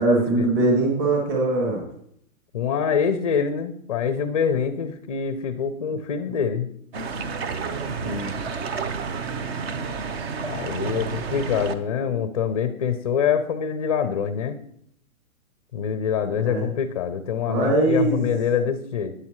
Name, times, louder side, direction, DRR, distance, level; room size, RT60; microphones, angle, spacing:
voice 1, 0.0-1.9 8.0-8.3 16.4-16.7 17.5-18.3, right 2 dB, 25° right, -1 dB, 2.5 m, -22 dB
voice 2, 2.5-6.7 10.4-14.6 15.7-19.1, left 7 dB, 30° left, 11 dB, 0.5 m, -25 dB
sound 1, 6.9-11.7, right 5 dB, 45° right, 1.1 m, -30 dB
13.0 x 9.9 x 3.1 m, 0.69 s
hypercardioid pair, 155°, 42 cm